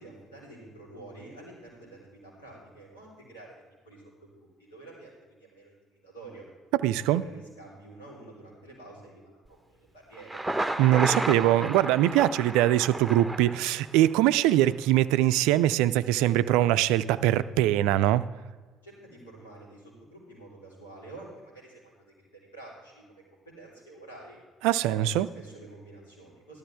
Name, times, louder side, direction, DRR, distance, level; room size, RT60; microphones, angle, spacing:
voice 1, 0.0-6.5 6.9-10.4 18.8-24.4 24.9-26.6, right 2 dB, 90° left, -5 dB, 3.8 m, -48 dB
voice 2, 6.8-7.2 10.8-18.3 24.6-25.3, right 13 dB, 70° right, 15 dB, 0.3 m, -22 dB
Thunder, 10.1-14.1, right 2 dB, 10° right, 0.9 m, -32 dB
14.0 x 12.5 x 3.5 m, 1.4 s
hypercardioid pair, 50°, 0 cm